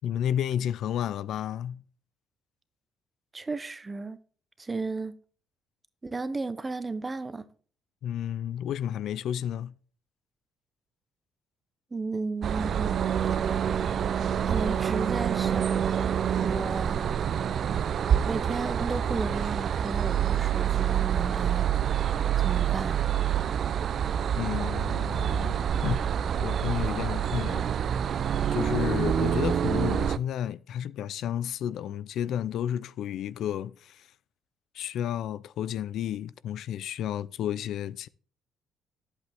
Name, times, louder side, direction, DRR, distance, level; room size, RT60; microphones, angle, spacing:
voice 1, 0.0-1.8 8.0-9.7 24.4-26.0 26.4-27.7 28.5-34.1 34.7-38.1, left 10 dB, 65° left, 0.4 m, -31 dB
voice 2, 3.3-4.2 4.6-5.1 6.0-7.5 11.9-13.0 13.3-14.0 14.5-15.9 16.4-17.2 18.3-21.7 22.4-23.0, right 3 dB, 15° right, 0.7 m, -34 dB
sound 1, 12.4-30.2, right 9 dB, 45° right, 0.4 m, -27 dB
10.5 x 8.2 x 3.5 m
cardioid pair, 155°, 0 cm